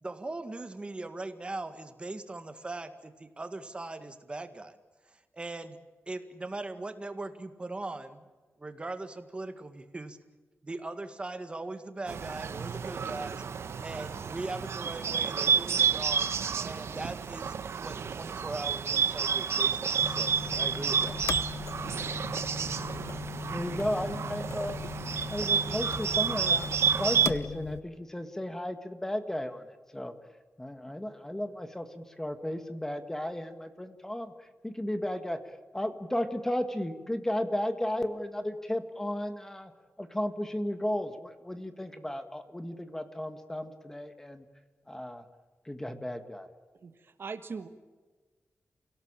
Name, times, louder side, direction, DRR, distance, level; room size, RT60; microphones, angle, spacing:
voice 1, 0.0-4.8 5.1-5.8 6.1-8.3 8.6-10.2 10.6-13.4 13.8-17.5 17.8-21.2, right 2 dB, 25° right, 9 dB, 1.9 m, -40 dB
Bird, 12.1-27.3, right 6 dB, 70° right, 1.2 m, -30 dB
sound 1, 20.0-27.8, left 6 dB, 70° left, 0.9 m, -39 dB
voice 2, 23.5-24.8 25.3-30.1 30.6-39.7 40.0-44.4 44.9-45.2 45.6-46.5, left 1 dB, 10° left, 8 dB, 1.6 m, -34 dB
voice 3, 46.8-47.7, right 5 dB, 55° right, 9 dB, 1.5 m, -40 dB
29.0 x 17.5 x 8.8 m, 1.3 s
wide cardioid pair, 150°, 5 cm